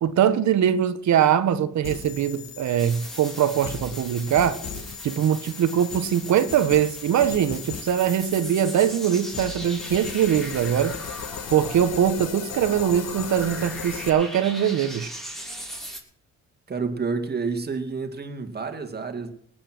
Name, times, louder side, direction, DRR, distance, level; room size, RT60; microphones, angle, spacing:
voice 1, 0.0-4.6 5.0-11.0 11.5-15.1, right 9 dB, 70° right, 12 dB, 1.2 m, -22 dB
sound 1, 1.8-14.1, left 7 dB, 55° left, 1.6 m, -37 dB
sound 2, 2.8-16.0, right 1 dB, ahead, 3.1 m, -40 dB
voice 2, 16.7-19.3, right 4 dB, 35° right, 7 dB, 2.3 m, -29 dB
19.5 x 8.7 x 6.0 m, 0.66 s
cardioid pair, 90°, 30 cm